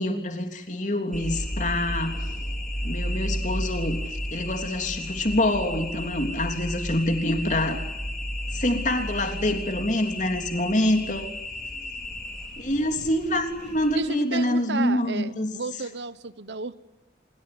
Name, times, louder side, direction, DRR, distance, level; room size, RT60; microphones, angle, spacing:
voice 1, 0.0-2.3 2.8-7.8 8.5-11.3 12.6-15.5, left 1 dB, 45° left, 5 dB, 3.4 m, -26 dB
sound 1, 1.1-14.0, equal, 5° left, 4.0 m, -33 dB
voice 2, 13.9-16.7, right 4 dB, 80° right, 15 dB, 1.1 m, -33 dB
26.0 x 23.0 x 9.7 m, 0.93 s
head